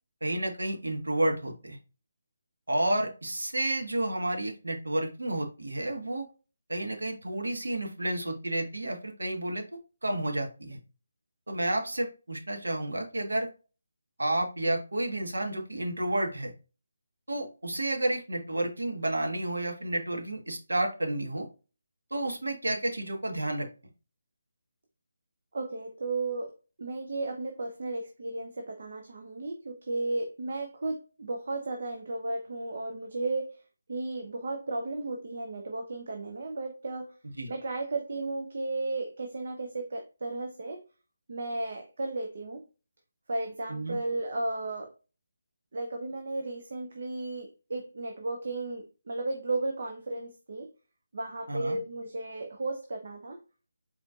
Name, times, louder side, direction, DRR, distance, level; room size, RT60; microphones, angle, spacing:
voice 1, 0.2-1.8 2.7-6.3 6.7-9.6 10.0-10.8 11.5-13.5 14.2-16.5 17.3-21.5 22.1-23.7 37.4-37.5 43.7-44.0 51.5-51.8, right 1 dB, 85° right, 1.4 m, -31 dB
voice 2, 25.5-26.5 26.8-33.5 33.9-37.1 37.5-40.8 41.3-42.6 43.3-44.9 45.7-50.7 51.1-53.4, right 2 dB, 60° right, 0.8 m, -34 dB
4.4 x 4.4 x 2.4 m
figure-of-eight pair, 155°, 0 cm